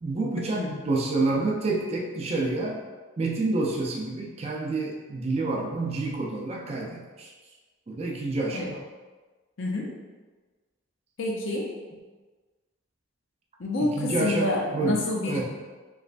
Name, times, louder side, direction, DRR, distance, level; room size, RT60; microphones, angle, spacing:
voice 1, 0.0-2.8 3.2-7.3 7.9-8.8 13.8-15.0 15.3-15.4, right 2 dB, 30° right, -1 dB, 0.3 m, -28 dB
voice 2, 9.6-10.0 11.2-11.7 13.6-15.4, left 2 dB, 65° left, -1 dB, 0.5 m, -28 dB
3.1 x 3.0 x 2.4 m, 1.3 s
head